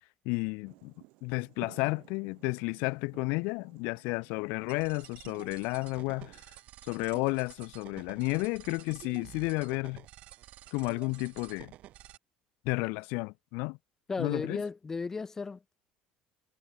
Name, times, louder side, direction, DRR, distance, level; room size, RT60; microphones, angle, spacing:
voice 1, 0.2-0.9 1.2-6.4 6.9-10.0 10.7-11.7 12.6-13.8 14.2-14.6, left 30 dB, 85° left, 0.8 m, -32 dB
sound 1, 0.6-6.4, right 24 dB, 75° right, 2.0 m, -56 dB
sound 2, 4.7-12.2, right 15 dB, 55° right, 1.1 m, -51 dB
voice 2, 14.1-15.8, left 4 dB, 15° left, 0.5 m, -35 dB
cardioid pair, 145°, 3 cm